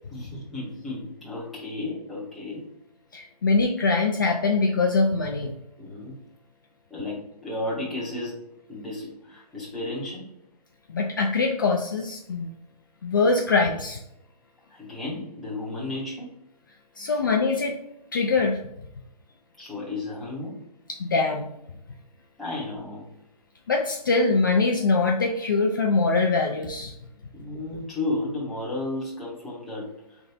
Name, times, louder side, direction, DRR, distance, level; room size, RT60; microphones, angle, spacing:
voice 1, 0.1-2.7 5.8-6.2 6.9-8.4 8.7-10.3 14.7-16.3 17.1-17.2 17.6-17.7 19.6-20.6 22.4-23.1 27.3-30.2, left 2 dB, ahead, -10 dB, 0.7 m, -33 dB
voice 2, 3.1-5.5 10.9-12.5 13.0-14.0 17.0-17.8 18.1-18.6 20.9-21.5 23.7-26.9, left 3 dB, 30° left, 1 dB, 0.4 m, -23 dB
3.8 x 3.4 x 4.0 m, 0.83 s
hypercardioid pair, 165°, 20 cm